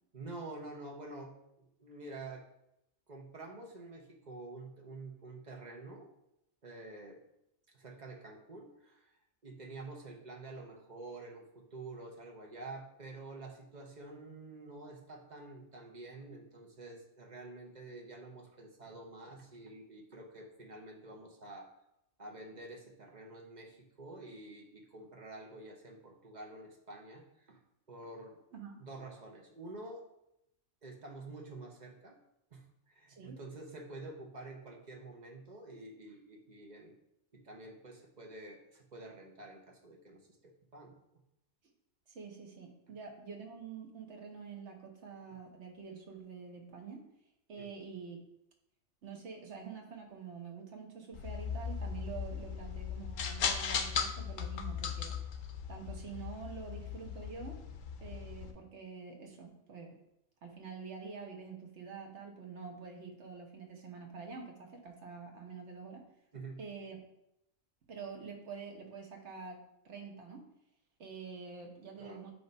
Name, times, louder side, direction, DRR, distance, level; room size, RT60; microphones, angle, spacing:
voice 1, 0.1-1.3 1.6-2.4 3.1-6.1 6.6-7.2 7.7-9.1 9.4-21.7 22.2-27.6 27.9-28.4 28.8-30.0 30.8-32.2 32.5-36.9 37.3-40.9 47.6-47.7 66.3-66.6 72.0-72.2, right 2 dB, 35° right, 1 dB, 1.1 m, -48 dB
voice 2, 42.1-47.0 47.5-48.2 49.0-55.1 55.7-57.6 58.0-60.0 60.4-66.0 66.6-67.0 67.9-70.4 71.0-72.3, right 5 dB, 60° right, 2 dB, 1.4 m, -47 dB
sound 1, 51.1-58.5, left 7 dB, 70° left, 1.0 m, -38 dB
8.0 x 2.8 x 5.3 m, 0.82 s
omnidirectional pair, 1.4 m